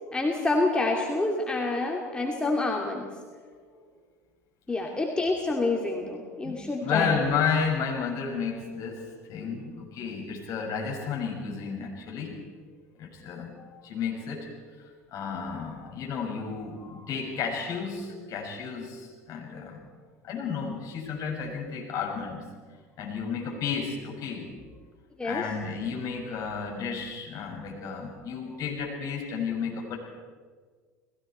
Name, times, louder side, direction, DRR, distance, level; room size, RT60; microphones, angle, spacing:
voice 1, 0.1-3.1 4.7-7.2 25.2-25.4, left 2 dB, 10° left, 0 dB, 2.8 m, -27 dB
voice 2, 6.4-12.4 13.0-14.5 14.8-19.9 20.2-22.5 23.0-24.5 25.2-30.0, left 6 dB, 45° left, 0 dB, 6.3 m, -32 dB
30.0 x 20.0 x 4.5 m, 1.5 s
figure-of-eight pair, 75°, 8 cm